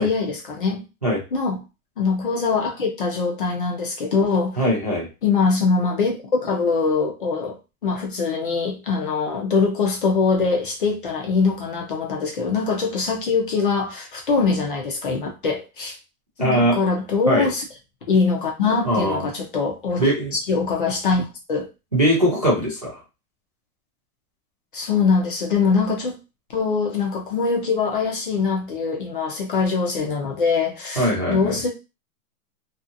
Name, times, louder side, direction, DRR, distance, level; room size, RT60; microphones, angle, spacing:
voice 1, 0.0-0.8 1.3-1.6 2.0-4.6 5.2-6.1 6.4-7.6 7.8-16.0 16.4-17.6 18.1-20.0 20.3-21.7 24.7-26.2 26.5-31.7, left 4 dB, 35° left, 0.5 m, -23 dB
voice 2, 4.6-5.1 16.4-16.8 17.3-17.5 18.8-19.3 20.0-20.3 21.9-23.0 31.0-31.6, equal, 30° right, 0.3 m, -21 dB
2.7 x 2.4 x 2.4 m
hypercardioid pair, 170°, 46 cm